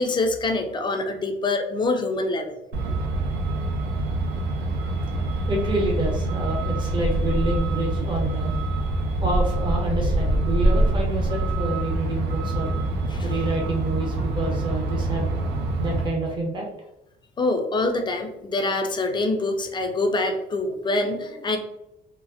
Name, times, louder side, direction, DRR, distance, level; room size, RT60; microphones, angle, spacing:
voice 1, 0.0-2.6 13.1-13.2 17.4-21.6, left 2 dB, 25° left, 5 dB, 0.4 m, -25 dB
Truck, 2.7-16.1, right 2 dB, 85° right, 0.5 m, -25 dB
voice 2, 5.2-8.6 9.2-12.7 13.2-15.3 15.8-16.7 17.8-17.9, right 2 dB, 30° right, -1 dB, 0.8 m, -28 dB
3.2 x 2.0 x 2.5 m, 0.88 s
cardioid pair, 110°, 17 cm